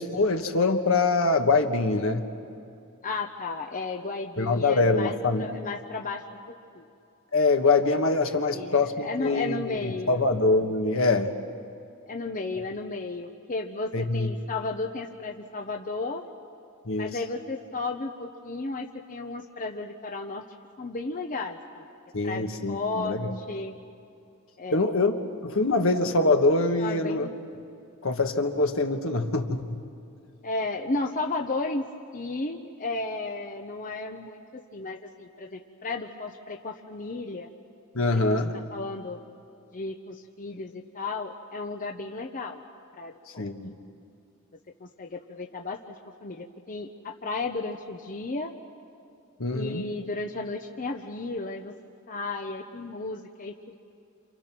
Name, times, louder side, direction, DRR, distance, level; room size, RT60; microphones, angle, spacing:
voice 1, 0.0-2.3 4.4-5.5 7.3-11.3 13.9-14.3 16.8-17.2 22.1-23.4 24.7-25.1 25.4-27.3 28.0-29.8 37.9-38.5 43.4-43.8 49.4-49.9, left 3 dB, 65° left, 5 dB, 1.5 m, -24 dB
voice 2, 3.0-6.2 6.7-6.8 8.5-10.2 12.1-16.2 17.0-20.4 20.8-21.9 22.2-23.7 24.6-25.2 26.8-27.3 30.4-31.8 32.1-34.4 34.7-37.5 38.1-38.4 38.7-39.2 39.7-42.6 43.0-43.4 44.8-45.8 46.2-48.5 49.5-51.7 52.1-53.7, left 3 dB, 40° left, 3 dB, 0.9 m, -34 dB
28.5 x 27.5 x 6.1 m, 2.6 s
head